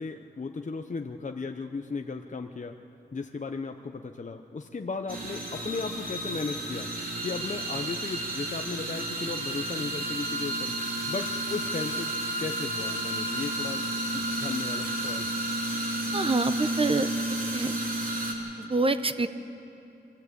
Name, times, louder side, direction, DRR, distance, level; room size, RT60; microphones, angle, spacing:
voice 1, 0.0-2.8 3.1-6.9 7.2-10.7 11.1-12.1 12.4-13.9 14.1-15.3, left 4 dB, 40° left, 5 dB, 0.8 m, -35 dB
sound 1, 5.1-18.3, right 1 dB, 50° right, 3.4 m, -32 dB
voice 2, 16.1-17.1 17.5-17.7 18.6-19.3, right 3 dB, 30° right, 10 dB, 0.9 m, -26 dB
24.5 x 15.0 x 8.3 m, 2.8 s
wide cardioid pair, 75°, 19 cm